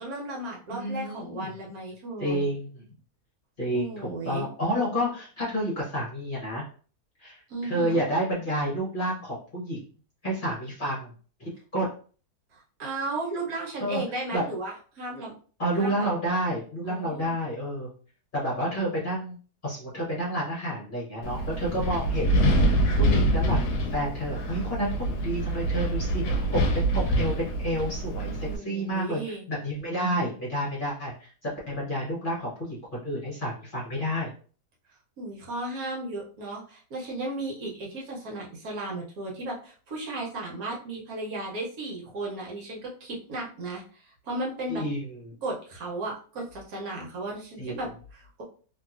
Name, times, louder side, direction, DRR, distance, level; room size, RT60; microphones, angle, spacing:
voice 1, 0.0-2.5 3.7-4.5 7.5-8.0 12.5-15.3 15.8-16.1 16.9-17.4 28.4-29.4 35.2-44.8 45.4-48.4, right 2 dB, 70° right, -2 dB, 1.2 m, -35 dB
voice 2, 0.7-1.5 2.2-2.8 3.6-6.6 7.2-9.8 10.2-11.1 11.4-11.9 13.8-14.0 14.3-14.5 15.6-17.9 18.3-19.4 19.6-34.3 44.7-45.3 47.6-47.8, equal, 40° left, -6 dB, 0.9 m, -30 dB
Wind, 21.2-28.6, right 1 dB, 90° left, 1.1 m, -25 dB
2.9 x 2.6 x 2.4 m, 0.41 s
omnidirectional pair, 1.7 m